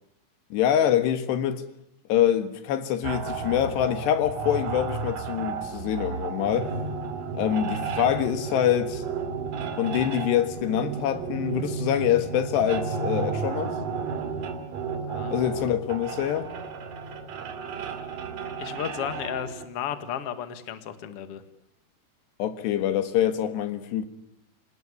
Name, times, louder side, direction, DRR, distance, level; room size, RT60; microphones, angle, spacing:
voice 1, 0.5-1.6 2.1-6.7 7.3-9.0 9.8-13.7 15.3-16.5 22.4-24.1, left 10 dB, 85° left, 3.8 m, -25 dB
sound 1, 3.0-19.7, right 5 dB, 60° right, 3.7 m, -33 dB
voice 2, 15.0-15.7 18.6-21.4, left 9 dB, 45° left, 2.2 m, -34 dB
27.5 x 18.5 x 9.9 m
omnidirectional pair, 4.8 m